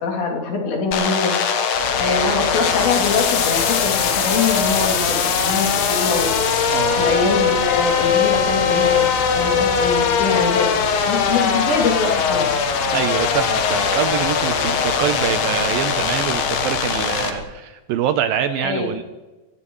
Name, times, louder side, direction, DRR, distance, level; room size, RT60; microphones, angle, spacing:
voice 1, 0.0-1.3 2.0-6.3 7.0-10.7 11.1-12.5 18.6-18.9, left 4 dB, 80° left, -2 dB, 5.1 m, -23 dB
sound 1, 0.9-17.3, left 6 dB, 65° left, 2.2 m, -20 dB
sound 2, 1.7-17.4, left 2 dB, 20° left, 4.3 m, -32 dB
voice 2, 6.7-7.1 12.9-19.0, right 10 dB, 80° right, 9 dB, 2.1 m, -24 dB
23.5 x 17.5 x 3.2 m, 1.2 s
omnidirectional pair, 4.9 m